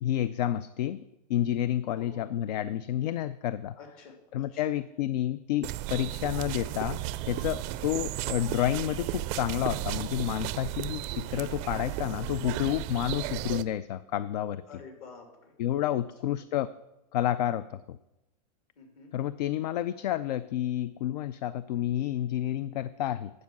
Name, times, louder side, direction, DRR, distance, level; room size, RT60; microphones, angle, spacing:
voice 1, 0.0-1.0 1.3-3.7 4.3-7.0 7.3-14.6 15.6-16.7 17.1-18.0 19.1-23.3, left 12 dB, 75° left, 16 dB, 0.4 m, -30 dB
voice 2, 1.9-2.2 3.8-4.1 4.5-4.7 6.5-6.8 14.6-15.5 16.3-16.4 18.8-19.1, left 5 dB, 55° left, 3 dB, 2.9 m, -49 dB
sound 1, 5.6-13.6, right 15 dB, 35° right, 0.4 m, -34 dB
9.5 x 7.4 x 6.1 m, 0.95 s
supercardioid pair, 145°, 21 cm